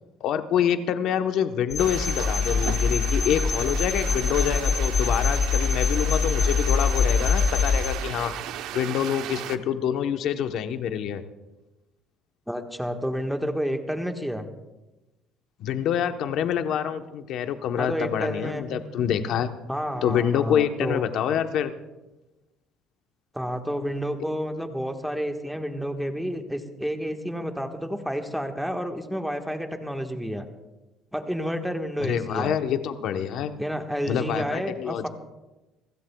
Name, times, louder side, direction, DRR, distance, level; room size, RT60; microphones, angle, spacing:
voice 1, 0.2-8.3 8.7-11.2 15.6-19.5 20.0-21.7 32.0-33.5 34.1-35.0, left 9 dB, 65° left, 8 dB, 1.0 m, -26 dB
sound 1, 1.7-7.9, left 5 dB, 40° left, 5.7 m, -24 dB
sound 2, 1.8-9.6, right 11 dB, 75° right, 0.8 m, -36 dB
voice 2, 12.5-14.5 17.8-18.7 19.7-21.1 23.3-30.5 31.1-32.6 33.6-35.1, equal, ahead, 4 dB, 1.4 m, -30 dB
29.0 x 16.0 x 2.3 m, 1.1 s
cardioid pair, 125°, 0 cm